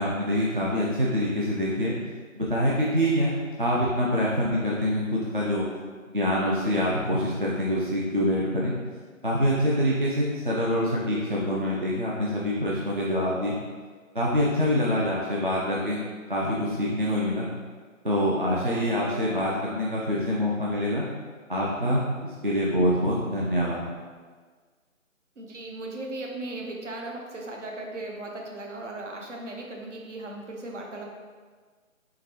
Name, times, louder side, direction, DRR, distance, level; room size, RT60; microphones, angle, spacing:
voice 1, 0.0-2.0 2.4-5.7 6.1-8.7 9.2-13.6 14.1-16.0 16.3-17.5 18.0-21.1 21.5-23.8, equal, 40° right, -5 dB, 0.4 m, -25 dB
voice 2, 25.4-31.1, right 2 dB, 60° right, 0 dB, 0.8 m, -37 dB
3.8 x 3.2 x 2.9 m, 1.5 s
figure-of-eight pair, 160°, 41 cm